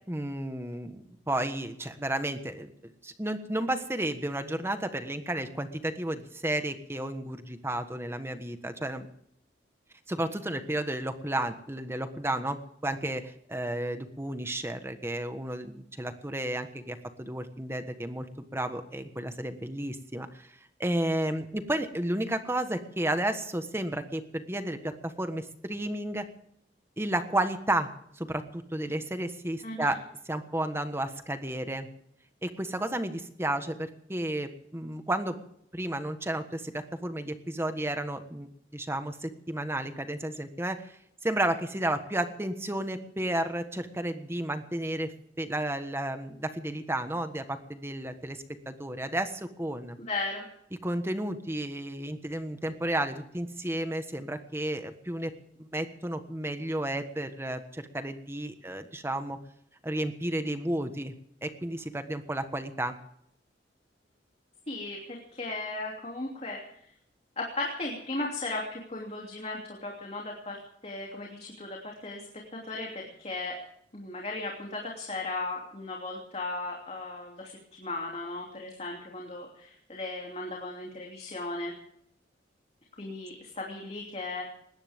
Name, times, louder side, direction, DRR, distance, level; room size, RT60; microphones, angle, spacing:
voice 1, 0.1-9.1 10.1-20.5 20.8-26.3 27.0-27.9 28.2-31.9 32.4-35.4 35.7-38.5 38.7-40.9 41.2-50.0 50.8-55.3 55.6-59.4 59.8-61.1 61.4-63.0, right 1 dB, 15° right, 8 dB, 1.4 m, -32 dB
voice 2, 29.6-29.9 50.0-50.5 64.7-66.6 67.4-70.6 70.8-72.2 72.5-73.5 73.9-81.7 83.0-84.4, left 2 dB, 35° left, -1 dB, 2.9 m, -36 dB
20.5 x 17.0 x 3.6 m, 0.72 s
head